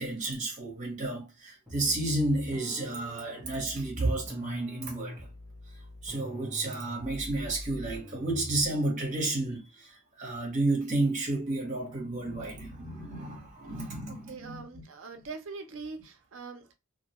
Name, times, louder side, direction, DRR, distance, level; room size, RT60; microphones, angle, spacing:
voice 1, 0.0-5.3 6.0-14.8, right 2 dB, 35° right, 1.0 m, -31 dB
sound 1, 1.7-8.8, equal, 5° right, 0.7 m, -44 dB
voice 2, 14.3-16.7, right 4 dB, 65° right, 0.5 m, -42 dB
2.6 x 2.2 x 2.9 m
head